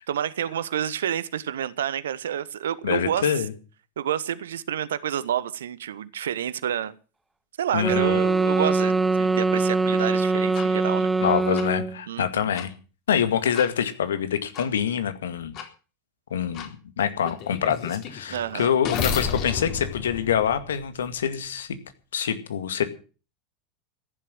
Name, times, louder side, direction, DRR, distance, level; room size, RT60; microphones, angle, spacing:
voice 1, 0.1-3.4 4.0-7.0 7.6-11.3 12.1-12.5 18.3-18.7, right 10 dB, 70° right, 18 dB, 1.1 m, -29 dB
voice 2, 2.8-3.5 7.7-8.2 11.2-12.7 13.1-15.6 16.3-21.7 22.1-22.8, left 8 dB, 75° left, 10 dB, 2.1 m, -25 dB
sound 1, 7.8-12.0, right 3 dB, 10° right, 1.0 m, -23 dB
sound 2, 10.5-10.7 11.5-11.7 12.5-12.7 13.5-13.7 14.5-14.7 15.5-15.7 16.5-16.7 17.2-21.1, left 7 dB, 45° left, 4.2 m, -32 dB
14.5 x 11.0 x 7.7 m, 0.37 s
figure-of-eight pair, 80°, 0 cm